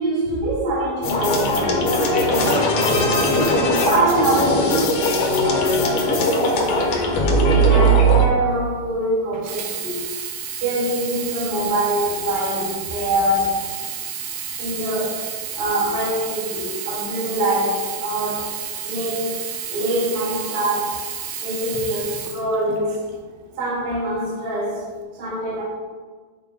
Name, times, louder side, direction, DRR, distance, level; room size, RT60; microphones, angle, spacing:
voice 1, 0.0-2.0 2.3-6.9 7.6-10.1 10.6-13.6 14.6-15.2 15.5-18.5 18.8-21.1 21.4-23.1 23.6-25.6, right 1 dB, 45° right, -6 dB, 2.4 m, -24 dB
sound 1, 1.0-8.2, equal, 70° left, 1.6 m, -19 dB
Sink (filling or washing), 9.3-23.1 23.8-23.9, right 8 dB, 75° right, 1.9 m, -31 dB
11.5 x 4.9 x 3.7 m, 1.4 s
omnidirectional pair, 4.4 m